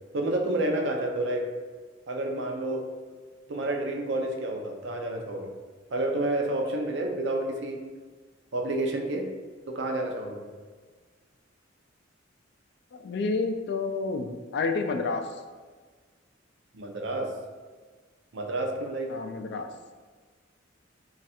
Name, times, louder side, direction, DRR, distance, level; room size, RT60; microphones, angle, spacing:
voice 1, 0.1-1.5 2.1-2.9 3.5-5.5 5.9-7.8 8.5-9.3 9.7-10.5 16.7-17.3 18.3-19.1, right 1 dB, 65° right, 2 dB, 0.5 m, -29 dB
voice 2, 12.9-15.3 19.1-19.7, left 4 dB, 60° left, 6 dB, 0.3 m, -29 dB
3.2 x 2.4 x 4.2 m, 1.5 s
head